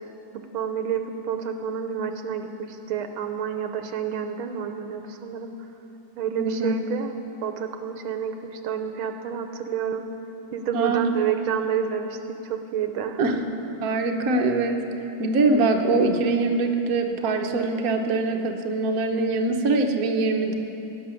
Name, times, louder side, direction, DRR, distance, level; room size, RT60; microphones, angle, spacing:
voice 1, 0.3-5.7 6.2-7.1 7.4-10.0 10.5-12.2 12.4-13.2, right 8 dB, 85° right, 7 dB, 1.7 m, -29 dB
voice 2, 6.4-6.7 10.7-11.1 13.2-13.4 13.8-14.8 15.2-20.5, right 3 dB, 50° right, 3 dB, 1.2 m, -23 dB
16.5 x 6.8 x 9.7 m, 3.0 s
omnidirectional pair, 2.3 m